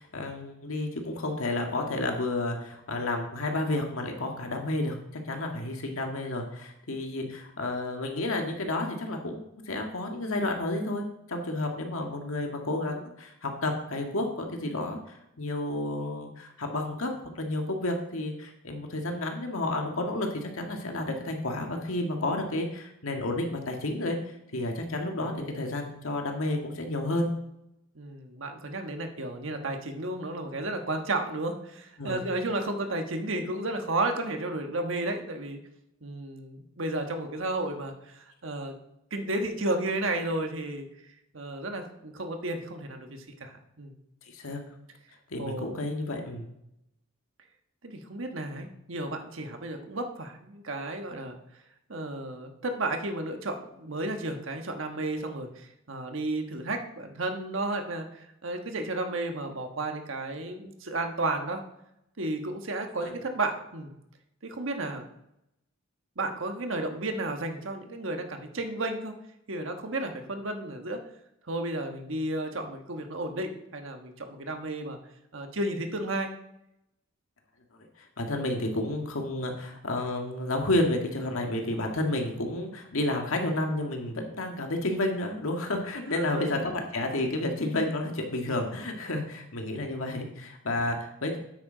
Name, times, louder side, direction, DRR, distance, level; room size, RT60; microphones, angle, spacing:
voice 1, 0.0-5.0 5.2-24.2 24.5-27.3 32.0-32.2 44.3-44.6 45.3-46.5 63.0-63.1 78.2-91.4, left 2 dB, 85° left, 3 dB, 1.7 m, -31 dB
voice 2, 25.2-25.6 27.9-35.6 36.0-38.7 39.1-40.9 41.3-43.9 45.4-45.8 47.8-51.4 51.9-61.6 62.2-63.9 64.4-65.0 66.2-69.1 69.5-71.0 71.5-75.0 75.3-76.3 86.1-86.5, right 2 dB, 70° right, 5 dB, 1.3 m, -33 dB
9.8 x 8.5 x 3.9 m, 0.82 s
head